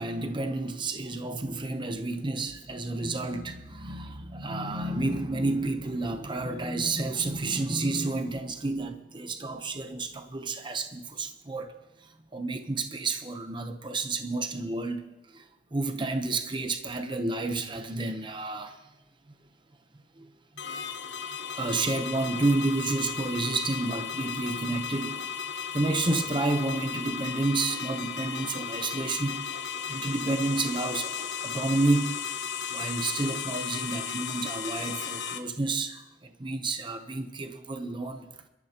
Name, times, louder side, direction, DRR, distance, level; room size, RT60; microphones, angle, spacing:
voice 1, 0.0-11.7 12.0-18.8 20.2-20.3 20.6-20.9 21.5-25.3 25.7-29.5 29.9-32.4 32.7-38.4, right 2 dB, 25° right, 0.8 m, -30 dB
sound 1, 20.6-35.4, left 7 dB, 85° left, 1.1 m, -35 dB
28.0 x 12.5 x 2.9 m
head